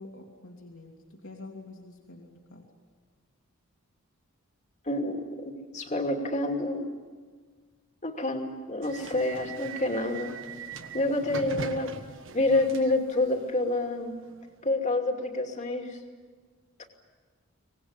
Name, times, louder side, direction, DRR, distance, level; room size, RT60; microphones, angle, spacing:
voice 1, 0.0-2.7 11.3-11.5, left 2 dB, 70° left, 0 dB, 2.9 m, -46 dB
voice 2, 4.9-6.9 8.0-10.3 10.9-11.9 12.3-14.2 14.6-16.0, left 2 dB, 35° left, 3 dB, 2.7 m, -28 dB
sound 1, 8.8-14.5, right 4 dB, 60° right, 1.5 m, -41 dB
25.0 x 20.0 x 9.8 m, 1.5 s
head